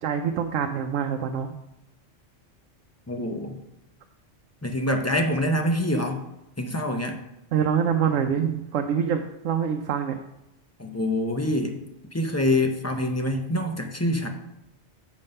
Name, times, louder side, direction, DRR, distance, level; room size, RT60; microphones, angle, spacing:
voice 1, 0.0-1.5 7.5-10.2, right 7 dB, 80° right, 5 dB, 1.0 m, -25 dB
voice 2, 3.1-3.6 4.6-6.2 6.6-7.2 10.8-11.8 12.1-14.3, left 1 dB, 20° left, 3 dB, 0.5 m, -25 dB
7.3 x 5.4 x 5.4 m, 0.87 s
omnidirectional pair, 1.3 m